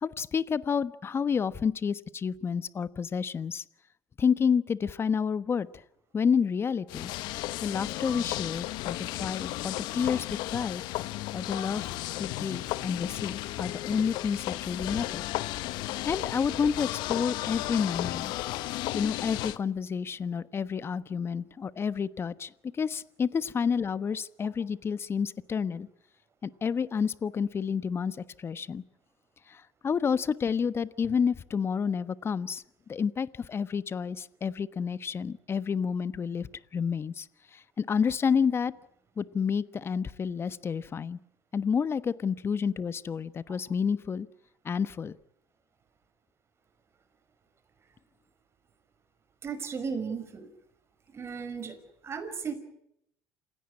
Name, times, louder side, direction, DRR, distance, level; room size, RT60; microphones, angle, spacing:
voice 1, 0.0-3.6 4.2-5.7 6.1-7.1 7.6-10.8 11.3-11.9 12.2-15.2 16.0-18.3 18.9-22.5 22.8-25.9 26.4-28.8 29.5-32.6 32.9-37.3 37.5-38.7 39.2-41.2 41.5-44.3 44.6-45.2, left 6 dB, 35° left, 16 dB, 1.2 m, -29 dB
sound 1, 6.9-19.6, left 17 dB, 70° left, 1.0 m, -34 dB
voice 2, 49.4-50.5 51.1-51.8 52.0-52.5, right 5 dB, 35° right, 8 dB, 5.8 m, -35 dB
28.0 x 17.0 x 9.8 m, 0.77 s
supercardioid pair, 90°, 8 cm